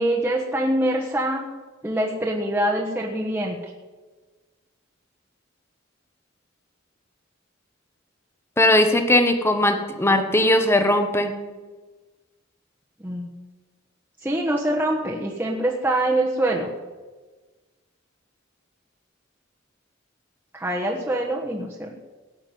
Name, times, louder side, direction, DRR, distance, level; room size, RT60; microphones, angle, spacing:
voice 1, 0.0-1.5 1.8-3.7 13.0-13.3 14.2-16.7 20.5-21.9, right 1 dB, 10° right, -3 dB, 1.4 m, -24 dB
voice 2, 8.6-11.3, left 1 dB, 10° left, 6 dB, 1.3 m, -19 dB
17.5 x 6.4 x 9.3 m, 1.3 s
head